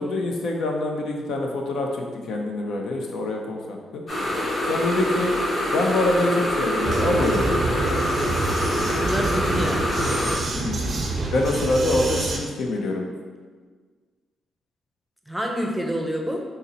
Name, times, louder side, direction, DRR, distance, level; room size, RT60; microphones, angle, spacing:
voice 1, 0.0-4.0 4.7-5.3 5.7-7.6 10.5-10.8 11.3-13.1, left 2 dB, 75° left, 2 dB, 0.5 m, -25 dB
sound 1, 4.1-10.3, left 1 dB, 55° left, 1.3 m, -25 dB
Vehicle, 6.8-12.4, right 2 dB, 50° right, 0.5 m, -27 dB
voice 2, 8.9-10.0 15.3-16.4, equal, ahead, 1 dB, 0.6 m, -27 dB
3.8 x 2.0 x 4.0 m, 1.5 s
supercardioid pair, 60°, 0 cm